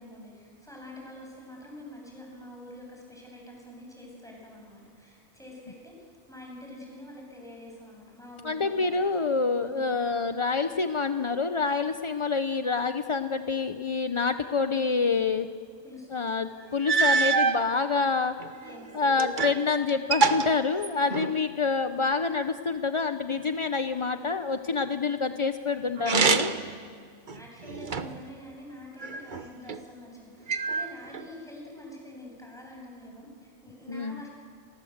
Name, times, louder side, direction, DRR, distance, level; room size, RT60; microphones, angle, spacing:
voice 1, 0.0-8.9 9.2-9.9 15.8-16.1 18.6-18.9 27.3-34.3, left 1 dB, ahead, -2 dB, 7.6 m, -46 dB
voice 2, 8.4-15.5 16.1-18.4 18.9-26.5 33.9-34.2, left 4 dB, 35° left, 9 dB, 0.5 m, -27 dB
sound 1, 16.3-16.4 16.9-17.6 18.4-19.6 19.9-21.4 26.0-26.7 27.3-28.3 29.0-29.8 30.5-31.2, right 4 dB, 40° right, 1.0 m, -26 dB
29.5 x 23.5 x 8.0 m, 2.1 s
omnidirectional pair, 1.5 m